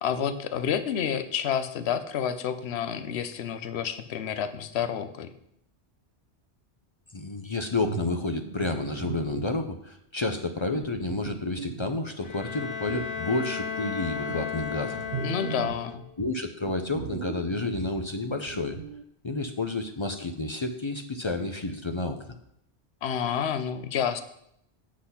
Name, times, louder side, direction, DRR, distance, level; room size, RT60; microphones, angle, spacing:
voice 1, 0.0-5.3 15.2-16.0 23.0-24.2, left 8 dB, 70° left, 11 dB, 0.9 m, -29 dB
voice 2, 7.1-15.0 16.2-18.8 19.2-22.2, left 2 dB, 35° left, 6 dB, 0.5 m, -30 dB
sound 1, 7.7-9.7 10.3-12.3 12.8-13.2 13.7-15.9 16.2-19.0, right 8 dB, 65° right, 0.7 m, -39 dB
Bowed string instrument, 12.2-16.2, left 6 dB, 50° left, 1.2 m, -35 dB
8.1 x 6.3 x 5.7 m, 0.74 s
omnidirectional pair, 1.1 m